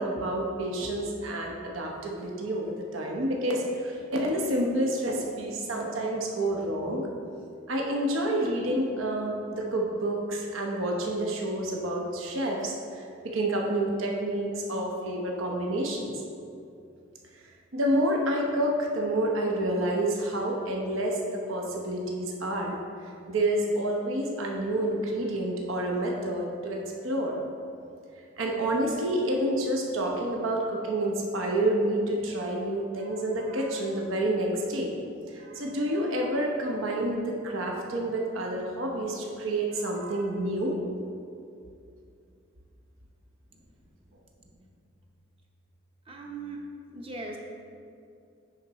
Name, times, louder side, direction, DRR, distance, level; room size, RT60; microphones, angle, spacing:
voice 1, 0.0-7.1 7.7-16.2 17.7-27.4 28.4-34.9 35.3-40.8, right 1 dB, 80° right, 0 dB, 0.8 m, -29 dB
voice 2, 44.1-44.6 46.1-46.6 46.9-47.4, right 3 dB, 25° right, 1 dB, 0.7 m, -41 dB
10.0 x 3.9 x 4.1 m, 2.5 s
head